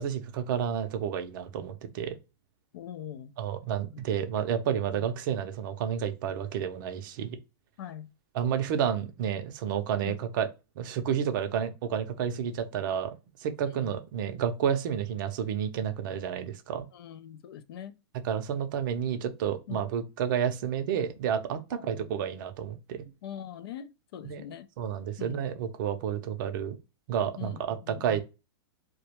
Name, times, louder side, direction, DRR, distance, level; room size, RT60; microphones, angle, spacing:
voice 1, 0.0-2.2 3.4-7.4 8.3-10.5 10.8-13.1 13.4-16.9 18.2-23.1 24.2-24.4 24.8-26.8 27.1-28.2, right 8 dB, 50° right, 0.5 m, -30 dB
voice 2, 2.7-3.3 3.9-4.0 4.9-5.1 7.8-8.1 10.0-10.2 13.7-13.9 16.9-18.0 19.7-19.9 21.7-22.2 23.2-24.7 25.2-25.4 27.4-28.2, left 9 dB, 60° left, 0.4 m, -42 dB
2.3 x 2.1 x 2.9 m
hypercardioid pair, 150°, 14 cm